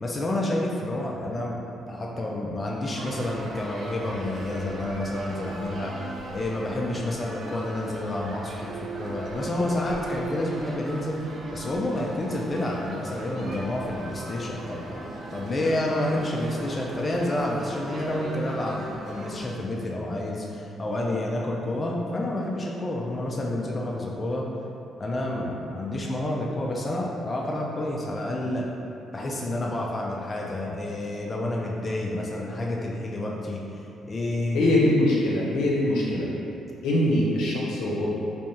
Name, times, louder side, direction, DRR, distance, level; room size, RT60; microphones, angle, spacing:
voice 1, 0.0-1.6 1.8-5.9 6.3-11.2 11.5-24.5 25.0-28.7 29.1-33.6 34.1-34.7, left 1 dB, 30° left, -2 dB, 0.4 m, -29 dB
sound 1, 2.9-19.5, right 2 dB, 60° right, 0.4 m, -38 dB
voice 2, 34.5-36.3 36.8-38.1, left 1 dB, 85° left, -4 dB, 0.7 m, -23 dB
3.4 x 3.3 x 2.8 m, 2.7 s
cardioid pair, 90°, 0 cm